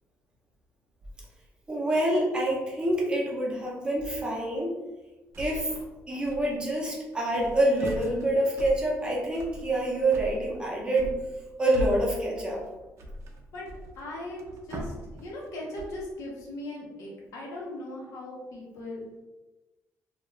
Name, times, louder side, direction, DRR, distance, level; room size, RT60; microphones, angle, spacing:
voice 1, 1.7-4.7 5.4-5.7 6.1-11.1 11.6-12.6, right 1 dB, 15° right, -3 dB, 0.6 m, -26 dB
sound 1, 5.3-5.9 6.2-6.8 7.1-16.1, equal, 60° right, 0.4 m, -40 dB
voice 2, 14.0-19.2, left 1 dB, 80° left, -3 dB, 0.9 m, -39 dB
2.3 x 2.3 x 3.1 m, 1.1 s
cardioid pair, 150°, 5 cm